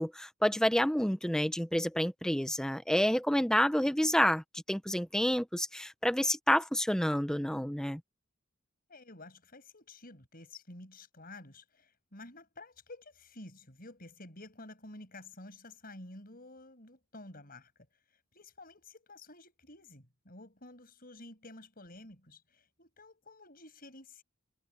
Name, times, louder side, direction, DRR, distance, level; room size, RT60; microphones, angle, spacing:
voice 1, 0.0-8.0, equal, 5° left, 0.9 m, -29 dB
voice 2, 8.9-24.2, left 2 dB, 45° left, 7.0 m, -51 dB
head